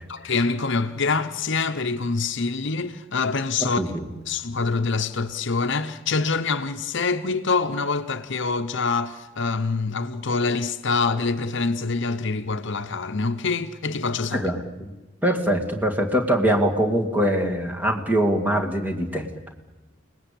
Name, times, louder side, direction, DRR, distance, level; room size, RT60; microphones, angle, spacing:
voice 1, 0.1-3.8 4.3-14.4, left 4 dB, 60° left, 0.9 m, -25 dB
voice 2, 3.6-4.1 14.3-14.9 15.2-19.3, equal, 10° right, 2.4 m, -23 dB
30.0 x 19.5 x 8.6 m
head